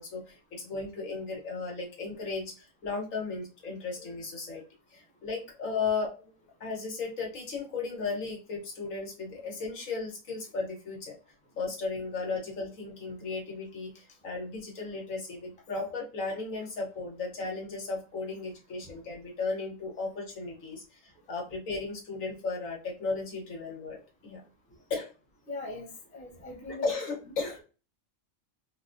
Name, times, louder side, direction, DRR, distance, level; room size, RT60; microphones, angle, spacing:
voice 1, 0.0-4.6 4.9-6.1 6.6-11.1 11.6-24.4 24.9-25.1 26.8-27.6, left 4 dB, 75° left, -1 dB, 1.5 m, -35 dB
voice 2, 25.5-25.9 26.1-26.8, left 2 dB, 10° left, -1 dB, 0.5 m, -40 dB
4.0 x 2.2 x 2.5 m, 0.34 s
omnidirectional pair, 1.4 m